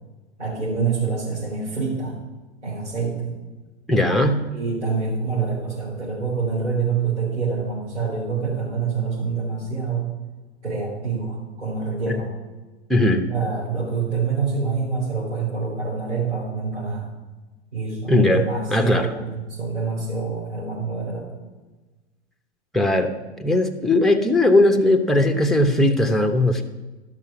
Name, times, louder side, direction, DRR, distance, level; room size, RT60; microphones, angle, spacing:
voice 1, 0.4-2.2 2.6-3.3 4.5-10.1 10.6-12.3 13.3-17.1 17.7-21.3, right 5 dB, 90° right, -9 dB, 4.1 m, -26 dB
voice 2, 3.9-4.4 12.9-13.3 18.1-18.4 18.7-19.1 22.7-23.1 23.4-26.6, left 1 dB, ahead, 5 dB, 0.8 m, -18 dB
12.0 x 5.9 x 6.9 m, 1.2 s
figure-of-eight pair, 100°, 34 cm